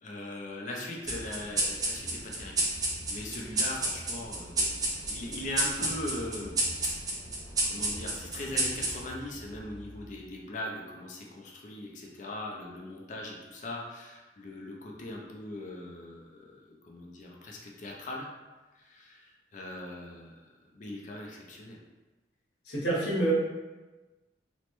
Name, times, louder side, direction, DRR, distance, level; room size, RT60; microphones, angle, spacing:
voice 1, 0.0-2.7 3.1-6.6 7.6-18.3 18.8-19.2 19.5-20.3 20.7-21.8, left 1 dB, 45° left, -1 dB, 0.4 m, -40 dB
sound 1, 1.1-10.0, right 2 dB, 20° right, 0.4 m, -32 dB
voice 2, 22.6-23.3, right 2 dB, 65° left, -6 dB, 0.9 m, -27 dB
3.0 x 2.1 x 3.0 m, 1.2 s
head